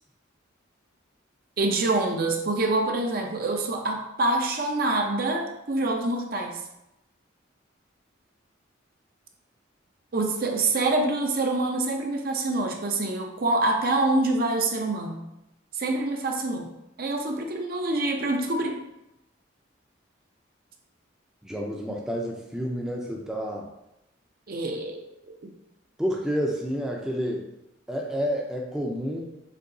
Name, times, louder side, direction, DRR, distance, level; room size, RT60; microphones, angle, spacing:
voice 1, 1.6-6.6 10.1-15.2 15.7-16.7 17.0-18.8 24.5-25.5, right 2 dB, 50° right, 3 dB, 0.6 m, -26 dB
voice 2, 21.4-23.7 26.0-27.5 27.9-29.3, equal, 5° right, -1 dB, 0.5 m, -29 dB
6.6 x 2.8 x 2.6 m, 0.87 s
head